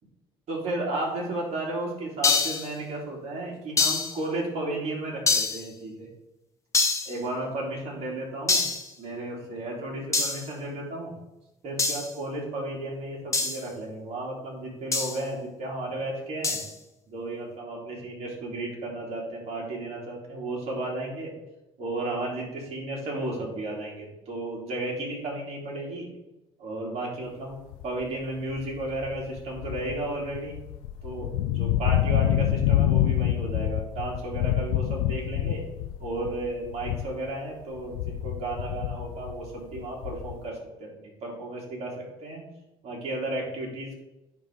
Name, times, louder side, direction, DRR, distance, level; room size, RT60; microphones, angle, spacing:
voice 1, 0.5-6.1 7.0-8.6 9.0-11.1 11.6-16.6 17.1-21.3 21.8-26.1 26.6-27.6 27.8-30.6 31.0-31.3 31.5-35.6 36.0-42.4 42.8-44.0, right 2 dB, 55° right, -3 dB, 2.9 m, -33 dB
sound 1, 2.2-2.7 3.8-4.2 5.3-5.7 6.7-7.2 8.5-8.9 10.1-10.5 11.8-12.1 13.3-13.6 14.9-15.2 16.4-16.7, left 4 dB, 25° left, 1.1 m, -25 dB
sound 2, 27.7-28.0 28.5-37.3 37.6-40.5, left 12 dB, 85° left, 0.4 m, -27 dB
10.0 x 3.7 x 4.7 m, 0.96 s
supercardioid pair, 80°, 12 cm